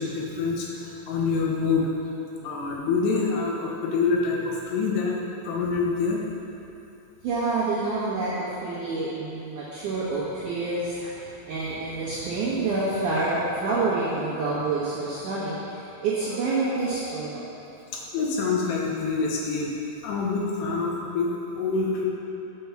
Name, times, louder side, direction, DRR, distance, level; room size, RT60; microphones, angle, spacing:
voice 1, 0.0-1.9 2.4-5.1 5.4-6.2 17.9-19.7 20.0-22.1, left 4 dB, 75° left, -2 dB, 3.0 m, -26 dB
voice 2, 7.2-17.5, right 3 dB, 75° right, -9 dB, 1.9 m, -28 dB
9.2 x 5.4 x 5.7 m, 2.9 s
omnidirectional pair, 5.1 m